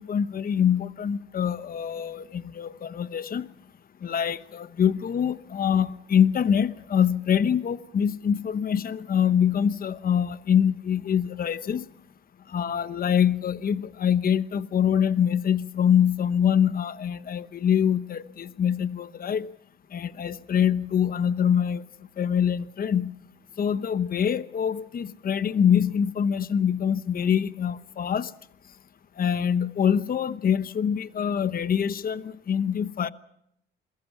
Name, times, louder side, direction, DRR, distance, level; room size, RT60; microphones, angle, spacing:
voice 1, 0.0-3.5 4.0-11.8 12.5-19.5 19.9-21.8 22.2-23.1 23.6-28.3 29.2-33.1, left 8 dB, 45° left, 1.0 m, -24 dB
28.0 x 22.5 x 5.9 m
cardioid pair, 90°, 20 cm